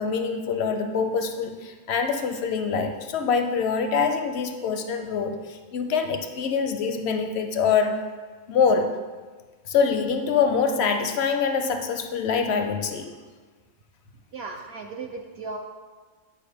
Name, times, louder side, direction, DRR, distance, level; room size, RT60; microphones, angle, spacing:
voice 1, 0.0-8.0 8.5-9.0 9.7-13.1, left 5 dB, 65° left, 6 dB, 0.7 m, -25 dB
voice 2, 14.3-15.6, right 4 dB, 65° right, 2 dB, 0.6 m, -36 dB
8.4 x 5.0 x 3.4 m, 1.4 s
omnidirectional pair, 1.5 m